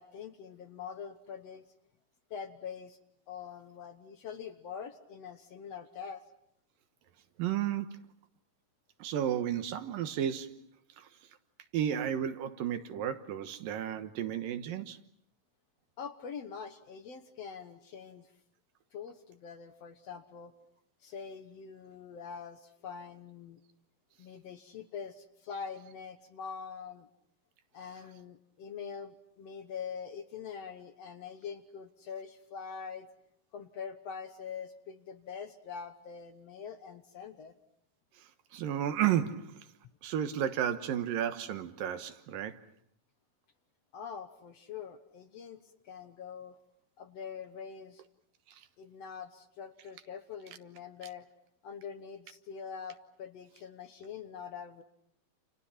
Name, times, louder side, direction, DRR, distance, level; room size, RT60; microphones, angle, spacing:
voice 1, 0.0-1.6 2.3-3.0 3.3-6.2 16.0-18.3 18.9-20.5 21.0-23.6 24.2-27.1 27.7-33.1 33.5-37.5 43.9-46.6 47.0-48.0 48.8-51.3 51.6-54.8, left 6 dB, 60° left, 1.9 m, -44 dB
voice 2, 7.4-8.0 9.0-10.7 11.0-11.1 11.7-15.0 38.5-39.7 40.0-42.6, right 10 dB, 85° right, 3.0 m, -32 dB
29.5 x 29.0 x 5.8 m
omnidirectional pair, 3.9 m